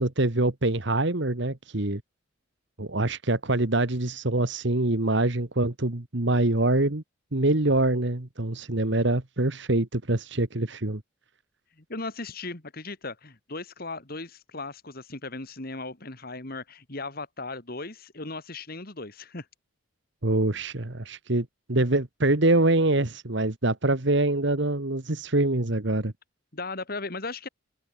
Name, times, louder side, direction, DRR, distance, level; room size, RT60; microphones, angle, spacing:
voice 1, 0.0-2.0 2.8-7.0 7.3-11.0 20.2-26.1, right 2 dB, 60° right, 1.6 m, -25 dB
voice 2, 11.8-19.5 26.5-27.5, left 3 dB, 45° left, 2.4 m, -37 dB
head